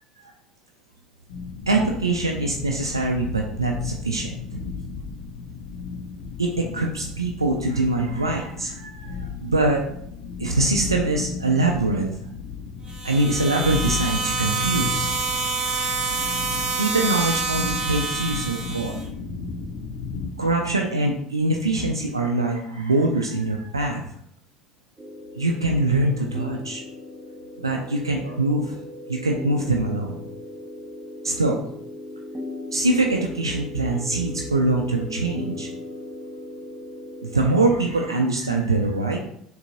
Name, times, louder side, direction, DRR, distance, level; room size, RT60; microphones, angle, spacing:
sound 1, 1.3-20.3, left 5 dB, 70° left, 0.7 m, -35 dB
voice 1, 1.7-4.3 6.4-9.8 10.4-12.1 13.0-15.1 16.8-19.0 20.4-24.0 25.4-26.8 27.6-28.8 29.1-30.2 31.2-31.6 32.7-35.7 37.2-39.2, right 2 dB, 90° right, 1 dB, 0.4 m, -23 dB
sound 2, 12.9-19.0, right 4 dB, 40° right, 1.2 m, -27 dB
sound 3, 25.0-38.2, left 1 dB, 15° right, 0.8 m, -38 dB
6.4 x 2.7 x 2.6 m, 0.70 s
figure-of-eight pair, 65°, 2 cm